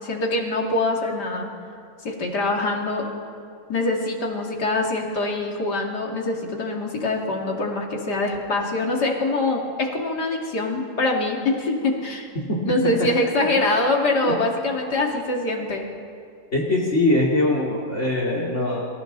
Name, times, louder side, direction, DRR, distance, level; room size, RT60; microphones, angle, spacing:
voice 1, 0.0-1.5 2.0-3.0 3.7-12.3 12.6-15.9, left 2 dB, 85° left, 0 dB, 3.1 m, -24 dB
voice 2, 16.5-18.9, left 2 dB, 45° left, -3 dB, 2.9 m, -22 dB
29.5 x 26.0 x 4.0 m, 2.3 s
omnidirectional pair, 1.7 m